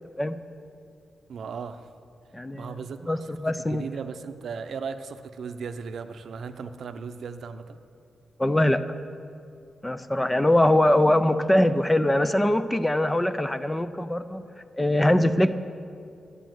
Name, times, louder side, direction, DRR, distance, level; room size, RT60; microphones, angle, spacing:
voice 1, 1.3-1.9 2.5-7.8, right 5 dB, 70° right, 9 dB, 0.6 m, -37 dB
voice 2, 2.3-2.7 3.1-3.9 8.4-8.8 9.8-14.4 14.7-15.5, left 1 dB, 10° left, 11 dB, 0.4 m, -22 dB
11.5 x 8.2 x 7.7 m, 2.4 s
wide cardioid pair, 155°, 0 cm